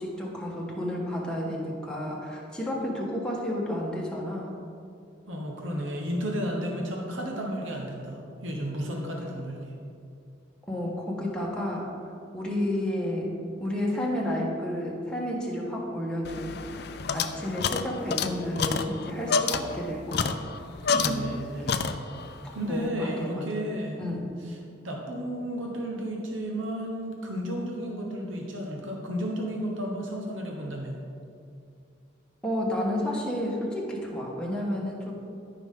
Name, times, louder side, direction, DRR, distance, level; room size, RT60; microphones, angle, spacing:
voice 1, 0.0-4.6 10.7-11.9 12.3-20.4 20.9-21.3 21.6-21.8 22.6-23.5 24.0-24.4 32.4-35.1, left 1 dB, 5° left, -3 dB, 1.4 m, -31 dB
voice 2, 5.3-9.7 20.9-21.8 22.5-24.0 24.8-31.0, equal, 85° right, 0 dB, 1.2 m, -33 dB
sound 1, 16.2-21.4 21.7-22.3, left 5 dB, 55° left, 0.4 m, -29 dB
13.5 x 5.7 x 3.8 m, 2.4 s
head